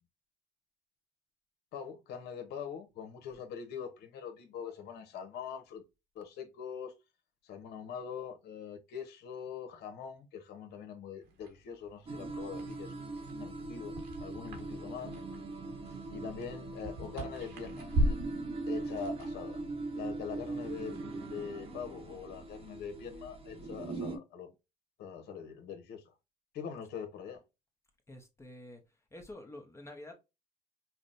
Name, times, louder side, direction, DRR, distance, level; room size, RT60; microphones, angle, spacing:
voice 1, 1.7-5.8 6.1-6.9 7.4-15.2 16.1-19.6 19.9-24.5 25.0-26.1 26.5-27.4, left 7 dB, 75° left, 0.9 m, -43 dB
sound 1, 11.2-21.1, equal, 85° right, 1.4 m, -39 dB
sound 2, 12.1-24.2, right 3 dB, 35° right, 0.9 m, -41 dB
voice 2, 28.1-30.1, left 1 dB, 15° left, 0.8 m, -49 dB
5.6 x 2.1 x 2.6 m
cardioid pair, 110°, 17 cm